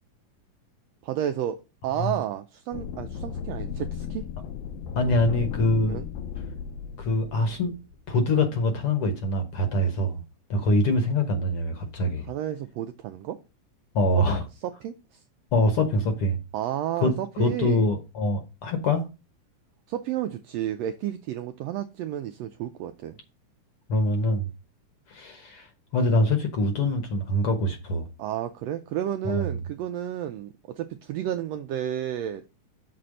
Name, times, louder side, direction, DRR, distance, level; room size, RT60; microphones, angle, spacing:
voice 1, 1.0-4.3 5.9-6.1 12.3-13.4 14.2-14.3 14.6-15.2 16.5-17.9 19.9-23.2 28.2-32.6, right 11 dB, 90° right, 1.4 m, -31 dB
sound 1, 2.7-8.1, left 7 dB, 80° left, 2.1 m, -35 dB
voice 2, 5.0-6.0 7.0-7.7 8.1-10.2 10.5-12.3 13.9-14.4 15.5-16.4 17.0-17.1 17.4-19.0 23.9-24.5 25.1-25.7 25.9-28.0 29.2-29.5, left 1 dB, 60° left, 1.6 m, -24 dB
6.8 x 4.3 x 6.4 m
omnidirectional pair, 3.5 m